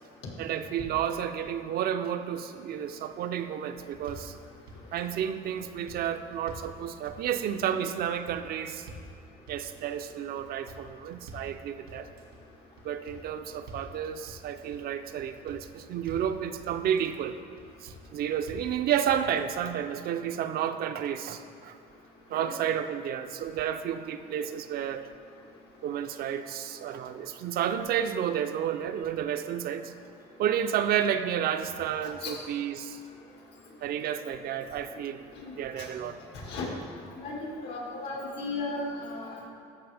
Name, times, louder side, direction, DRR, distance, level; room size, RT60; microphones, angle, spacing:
voice 1, 0.4-4.4 4.9-8.9 9.5-12.1 12.8-17.3 17.8-21.8 22.3-25.0 25.8-29.9 30.4-33.0 33.8-35.2 35.6-36.2, right 9 dB, 65° right, 9 dB, 0.5 m, -31 dB
sound 1, 3.9-4.3 4.7-5.2 5.6-6.7 7.1-7.6 8.0-8.4 8.7-9.1 9.5-10.0 10.4-11.5 11.9-12.4 12.8-13.9 14.3-14.8 15.2-16.3 16.7-17.2 17.6-18.0 18.3-18.7 19.1-19.6, equal, 90° right, 1.8 m, -47 dB
voice 2, 36.3-36.7 37.2-39.5, left 2 dB, 85° left, -2 dB, 1.9 m, -35 dB
13.5 x 5.7 x 3.4 m, 2.4 s
cardioid pair, 110°, 17 cm